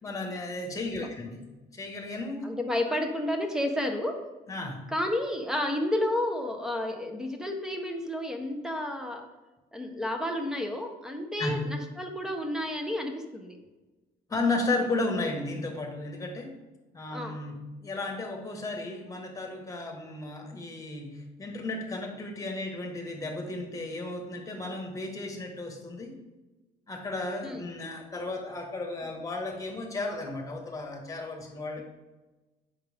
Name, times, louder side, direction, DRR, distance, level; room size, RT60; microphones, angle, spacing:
voice 1, 0.0-1.4 1.7-2.4 2.9-3.0 4.5-4.8 11.4-11.6 14.3-16.5 16.9-26.1 26.9-31.8, left 2 dB, 20° left, 2 dB, 1.6 m, -34 dB
voice 2, 2.4-4.2 4.9-9.2 9.7-13.6 17.1-17.4 27.4-27.6, left 1 dB, 5° right, 4 dB, 1.0 m, -31 dB
8.1 x 5.8 x 3.6 m, 1.1 s
cardioid pair, 110°, 17 cm